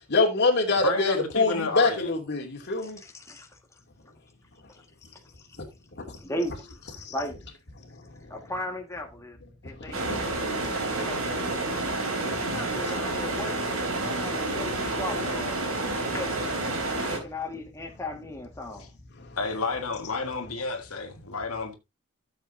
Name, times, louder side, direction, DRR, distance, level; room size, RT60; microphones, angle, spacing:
voice 1, 0.1-3.0 7.0-7.1 8.1-8.2 9.7-9.9 10.3-10.4 10.7-11.1 11.9-12.9 15.9-16.2 16.9-17.1 19.2-19.4, left 3 dB, 55° left, 2.8 m, -26 dB
voice 2, 0.8-2.1 19.4-21.7, left 3 dB, 80° left, 1.6 m, -30 dB
voice 3, 2.7-3.6 4.7-4.8 6.2-6.6 6.9-7.4 8.3-9.4 9.6-10.5 10.8-11.5 12.4-15.6 16.0-16.4 17.0-18.9, left 1 dB, 15° left, 1.8 m, -37 dB
sound 1, 9.9-17.2, right 2 dB, 75° right, 4.0 m, -29 dB
13.5 x 7.5 x 2.7 m
head